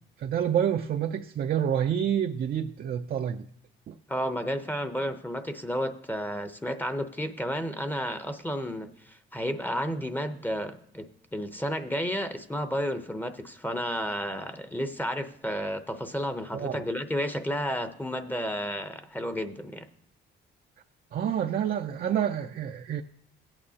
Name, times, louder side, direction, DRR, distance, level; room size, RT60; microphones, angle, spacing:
voice 1, 0.2-3.5 3.9-4.0 16.5-16.8 21.1-23.0, right 9 dB, 50° right, 0.4 m, -28 dB
voice 2, 4.1-19.9, equal, 10° left, 0.7 m, -32 dB
16.5 x 8.8 x 2.8 m
cardioid pair, 90°, 20 cm